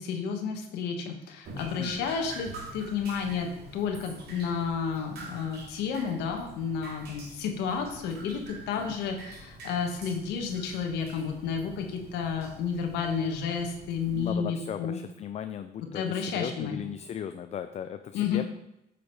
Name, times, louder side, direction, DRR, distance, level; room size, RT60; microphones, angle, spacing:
voice 1, 0.0-15.0 15.9-16.8 18.1-18.4, left 6 dB, 85° left, 4 dB, 1.5 m, -31 dB
Drip, 1.4-14.3, right 2 dB, 70° right, 2.5 m, -46 dB
voice 2, 1.8-2.1 8.7-8.9 14.1-18.5, left 9 dB, 40° left, 9 dB, 0.5 m, -37 dB
8.5 x 5.1 x 4.7 m, 0.87 s
cardioid pair, 110°, 17 cm